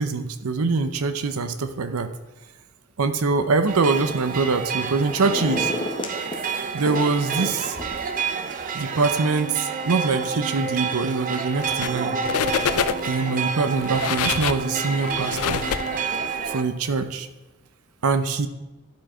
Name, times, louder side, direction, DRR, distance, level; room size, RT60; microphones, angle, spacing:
voice 1, 0.0-2.1 3.0-5.7 6.7-7.8 8.7-12.2 13.0-15.7 16.5-17.3 18.0-18.5, right 4 dB, 75° right, 10 dB, 0.6 m, -24 dB
sound 1, 3.7-16.6, right 5 dB, 35° right, 0.5 m, -29 dB
sound 2, 4.0-4.5 4.8-6.4 6.8-8.2 8.6-8.7, left 1 dB, 20° left, 0.7 m, -32 dB
sound 3, 11.6-12.0 12.2-13.2 13.7-16.4, left 8 dB, 75° left, 0.4 m, -26 dB
11.5 x 4.6 x 4.4 m, 1.1 s
head